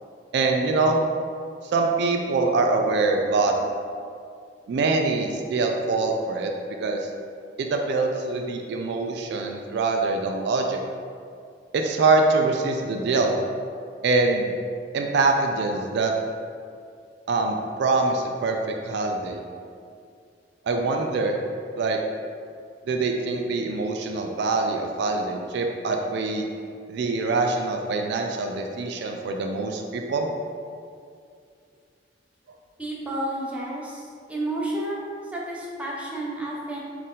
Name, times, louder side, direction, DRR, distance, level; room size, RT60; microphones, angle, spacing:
voice 1, 0.3-1.0 1.6-3.7 4.7-6.5 6.8-7.1 7.6-10.8 11.7-13.4 14.0-14.5 14.9-16.1 17.3-19.4 20.6-21.4 21.7-22.0 22.9-26.5 26.9-30.3, right 3 dB, 65° right, 3 dB, 0.3 m, -24 dB
voice 2, 32.8-36.8, right 1 dB, 5° right, -5 dB, 0.6 m, -31 dB
4.1 x 2.5 x 3.7 m, 2.3 s
head